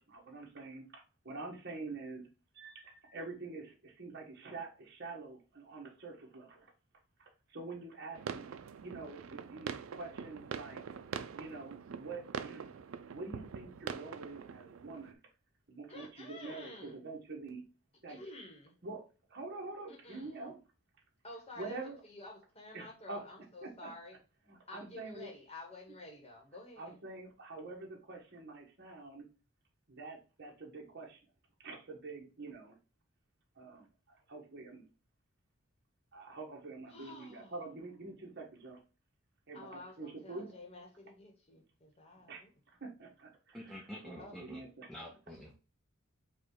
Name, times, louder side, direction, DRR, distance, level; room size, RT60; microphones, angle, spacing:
voice 1, 0.1-2.2 2.5-6.7 7.5-10.8 11.3-12.7 13.1-15.2 15.7-17.6 18.0-18.2 18.8-19.0 19.3-20.6 21.6-22.0 22.7-23.3 23.6-23.9 24.5-25.3 26.8-29.3 29.9-31.2 31.6-32.8 33.6-33.9 34.3-34.8 36.1-38.8 39.5-40.6 42.3-45.1, right 3 dB, 50° right, 1.2 m, -46 dB
sound 1, 8.1-15.1, right 6 dB, 70° right, 0.4 m, -44 dB
voice 2, 15.9-17.0 18.1-18.7 19.9-20.5 21.2-24.2 24.7-27.0 36.9-37.6 39.5-42.5 44.2-44.4, left 2 dB, 30° left, 1.1 m, -51 dB
voice 3, 43.5-44.6 44.9-45.6, equal, ahead, 0.5 m, -47 dB
5.0 x 2.3 x 4.5 m
head